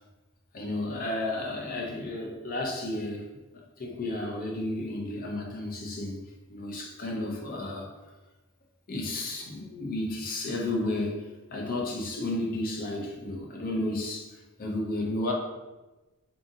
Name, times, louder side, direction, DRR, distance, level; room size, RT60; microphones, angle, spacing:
voice 1, 0.5-3.2 3.8-6.2 6.5-7.9 8.9-14.3 14.6-15.3, left 2 dB, 40° left, -1 dB, 0.5 m, -32 dB
2.6 x 2.5 x 2.6 m, 1.1 s
head